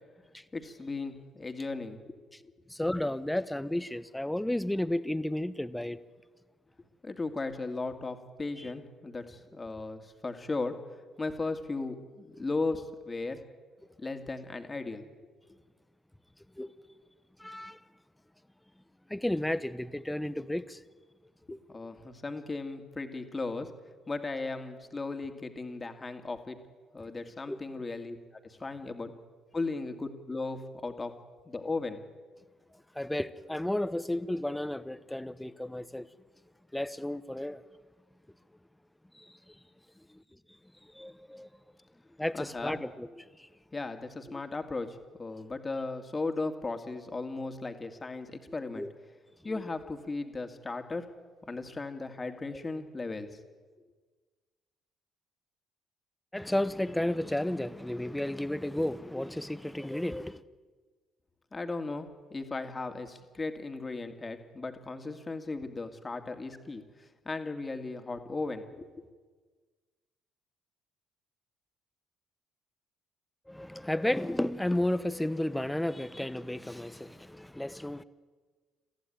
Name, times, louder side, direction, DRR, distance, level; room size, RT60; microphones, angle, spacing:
voice 1, 0.5-2.0 7.0-10.8 11.2-13.4 14.0-15.0 21.7-23.7 24.1-26.6 26.9-28.2 28.4-29.1 29.5-31.1 31.5-32.0 42.3-42.8 43.7-48.9 49.4-51.1 51.5-53.4 61.5-68.9, left 3 dB, 25° left, 2.5 m, -36 dB
voice 2, 2.7-6.0 8.6-8.7 16.6-16.7 17.4-17.8 19.1-20.8 21.5-21.6 27.0-27.1 27.5-27.6 32.9-36.1 36.7-37.6 39.1-39.6 40.1-40.2 40.8-41.5 42.2-43.5 44.3-44.4 48.7-48.9 52.5-52.6 56.3-60.4 73.5-78.0, left 1 dB, 5° left, 1.1 m, -33 dB
23.5 x 15.0 x 9.4 m
hypercardioid pair, 50°, 0 cm